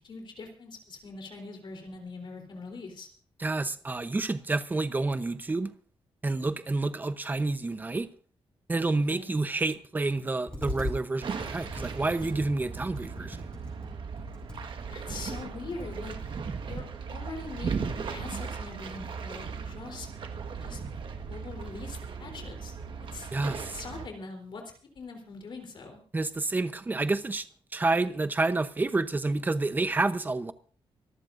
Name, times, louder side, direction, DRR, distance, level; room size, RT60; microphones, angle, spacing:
voice 1, 0.0-3.1 9.1-9.3 14.9-16.2 16.6-20.1 20.6-20.8 21.3-22.8 23.1-23.3 23.6-24.6 24.9-26.0, left 3 dB, 50° left, 3.6 m, -42 dB
voice 2, 3.4-5.7 6.2-8.1 8.7-13.4 23.3-23.8 26.1-27.5 27.7-30.5, right 3 dB, 20° right, 0.8 m, -29 dB
Computer keyboard, 10.5-11.0 11.4-16.3, left 1 dB, 10° left, 5.2 m, -40 dB
sound 1, 11.2-24.1, right 5 dB, 55° right, 1.4 m, -37 dB
25.0 x 14.0 x 2.6 m
wide cardioid pair, 175°, 10 cm